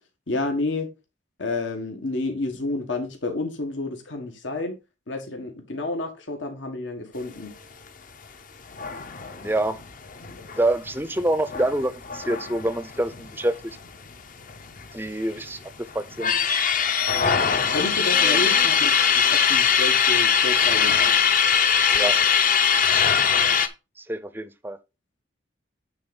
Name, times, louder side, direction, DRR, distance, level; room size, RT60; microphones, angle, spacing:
voice 1, 0.3-0.9 1.4-4.8 5.1-7.5 17.7-18.9 19.3-21.0, left 2 dB, 80° left, 1.7 m, -30 dB
sound 1, 8.7-13.9 14.1-14.2 14.5-15.4 15.9-23.7, left 7 dB, 45° left, 0.7 m, -21 dB
voice 2, 9.4-9.8 10.6-13.8 14.9-15.6 15.9-16.4 18.2-18.4 21.9-22.2 24.1-24.8, right 1 dB, 10° right, 0.5 m, -26 dB
8.9 x 3.8 x 5.3 m
head